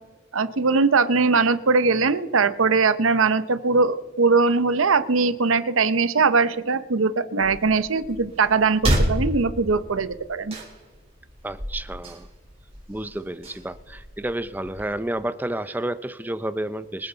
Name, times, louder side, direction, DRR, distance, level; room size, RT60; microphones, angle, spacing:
voice 1, 0.3-10.5, right 4 dB, 75° right, 14 dB, 0.8 m, -21 dB
sound 1, 7.4-14.9, equal, 25° right, 3.7 m, -31 dB
voice 2, 11.4-12.3 12.9-17.1, right 1 dB, 10° right, 13 dB, 0.5 m, -30 dB
25.5 x 9.0 x 4.0 m, 1.4 s
head